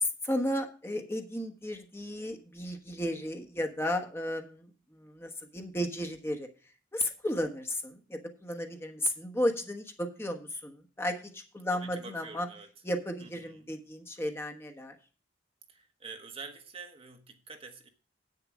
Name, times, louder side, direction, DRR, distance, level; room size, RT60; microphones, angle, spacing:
voice 1, 0.0-6.5 6.9-12.5 12.8-14.9, left 1 dB, 15° left, 4 dB, 1.1 m, -34 dB
voice 2, 11.7-12.7 13.2-13.6 15.7-17.9, right 4 dB, 30° right, 5 dB, 1.1 m, -47 dB
8.9 x 6.7 x 6.1 m, 0.39 s
head